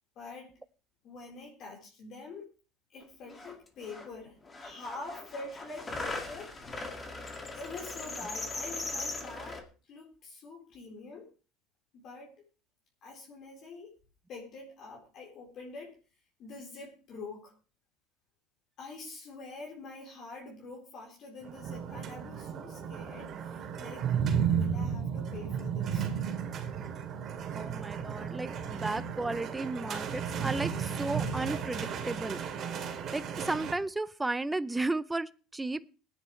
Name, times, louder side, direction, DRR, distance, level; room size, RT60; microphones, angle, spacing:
voice 1, 0.2-0.5 1.0-2.5 2.9-6.5 7.5-9.6 9.9-11.3 11.9-12.5 13.0-13.9 14.3-16.0 16.4-17.5 18.8-24.1 24.5-26.1, left 3 dB, 50° left, -2 dB, 4.1 m, -45 dB
sound 1, 3.0-3.1 3.3-4.1 4.4-9.6, left 2 dB, 20° left, 2.1 m, -39 dB
sound 2, 21.4-33.7, right 7 dB, 40° right, 2.6 m, -34 dB
voice 2, 27.5-32.4 33.1-35.9, right 2 dB, 10° right, 15 dB, 0.5 m, -34 dB
19.5 x 9.9 x 3.2 m, 0.35 s
cardioid pair, 125°, 0 cm